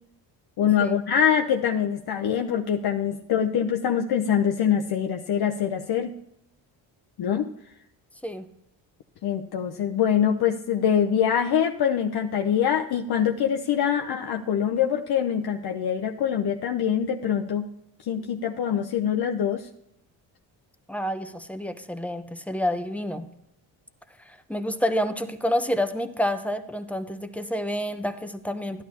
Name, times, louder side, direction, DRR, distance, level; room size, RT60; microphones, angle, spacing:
voice 1, 0.6-6.1 7.2-7.5 9.2-17.7 18.1-19.7, left 8 dB, 55° left, 3 dB, 0.7 m, -24 dB
voice 2, 20.9-23.3 24.2-28.8, equal, 5° left, 8 dB, 0.8 m, -28 dB
12.0 x 11.5 x 2.8 m, 0.79 s
cardioid pair, 75°, 47 cm